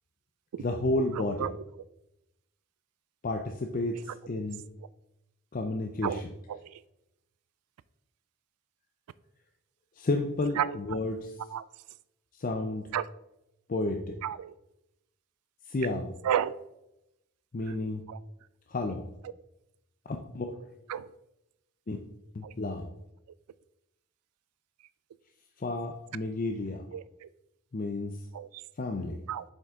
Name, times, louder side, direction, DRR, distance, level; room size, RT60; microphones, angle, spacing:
voice 1, 0.6-1.5 3.2-4.6 5.5-6.2 10.0-11.3 12.4-12.8 13.7-14.1 15.7-16.1 17.5-18.1 18.7-19.0 20.1-20.5 21.9-22.0 22.3-22.8 25.6-26.8 27.7-28.2 28.8-29.2, left 2 dB, 35° left, 0.4 m, -31 dB
voice 2, 1.2-1.6 6.0-6.2 6.5-6.7 10.6-11.0 11.5-11.6 12.9-13.0 14.2-14.5 16.2-16.6 18.1-18.2 20.9-21.1 22.4-22.5 26.9-27.3 28.3-28.5 29.3-29.4, right 9 dB, 85° right, 0.3 m, -32 dB
7.3 x 5.3 x 3.6 m
head